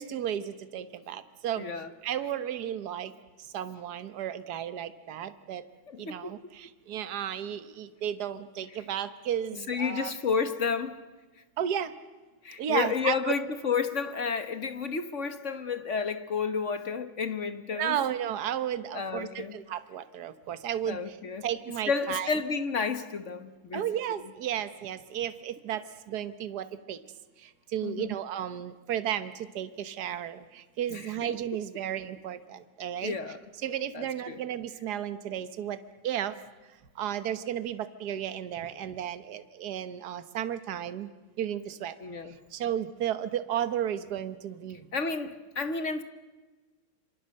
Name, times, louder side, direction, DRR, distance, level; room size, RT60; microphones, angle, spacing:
voice 1, 0.0-1.7 2.0-3.1 3.5-5.6 6.0-10.1 11.6-11.9 12.6-13.3 17.7-21.0 21.4-22.4 23.7-27.0 27.7-33.2 33.6-35.8 36.0-36.3 37.0-41.1 41.4-41.9 42.5-44.8, right 10 dB, 55° right, 1.6 m, -33 dB
voice 2, 1.6-1.9 5.9-6.3 8.7-8.9 9.7-11.0 12.4-18.0 18.9-19.6 20.9-21.5 21.9-24.2 27.8-28.1 30.9-31.4 33.0-33.4 33.9-34.4 42.0-42.4 44.9-46.0, left 5 dB, 40° left, 1.3 m, -31 dB
26.5 x 25.5 x 7.7 m
omnidirectional pair, 2.3 m